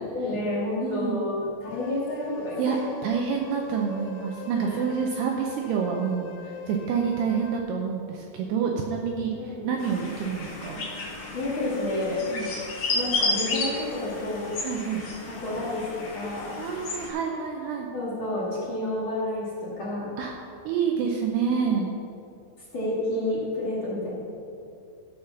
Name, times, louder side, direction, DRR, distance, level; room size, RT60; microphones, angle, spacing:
voice 1, 0.1-2.8 4.6-4.8 9.3-9.7 11.3-12.2 12.9-14.5 15.4-15.9 16.1-16.5 17.9-20.1 22.7-24.2, left 1 dB, 45° left, -7 dB, 1.8 m, -30 dB
voice 2, 0.8-1.2 2.6-2.8 3.0-10.8 12.3-12.5 14.6-15.0 16.6-17.9 20.2-20.3 20.6-21.9, right 6 dB, 80° right, 0 dB, 2.3 m, -28 dB
sound 1, 1.7-7.6, left 4 dB, 80° left, 3.3 m, -41 dB
sound 2, 9.8-17.1, left 3 dB, 60° left, 1.9 m, -32 dB
14.0 x 5.6 x 5.9 m, 2.6 s
omnidirectional pair, 5.6 m